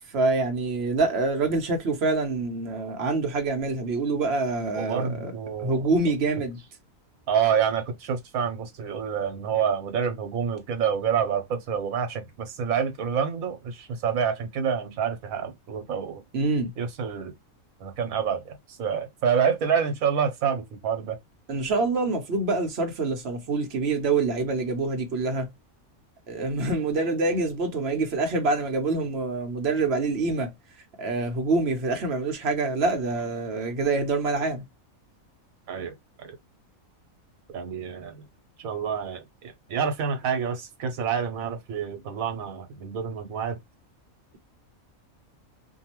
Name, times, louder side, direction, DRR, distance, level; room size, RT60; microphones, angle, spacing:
voice 1, 0.1-5.3 5.6-6.6 16.3-16.7 21.5-25.5 26.3-30.5 31.0-34.6, right 3 dB, 55° right, 1.0 m, -26 dB
voice 2, 4.8-5.8 7.3-16.2 16.8-17.3 17.8-18.5 18.8-21.2 35.7-35.9 36.2-36.3 37.5-38.2 38.6-39.2 39.7-43.6, right 7 dB, 80° right, 1.3 m, -27 dB
2.7 x 2.5 x 2.9 m
omnidirectional pair, 1.4 m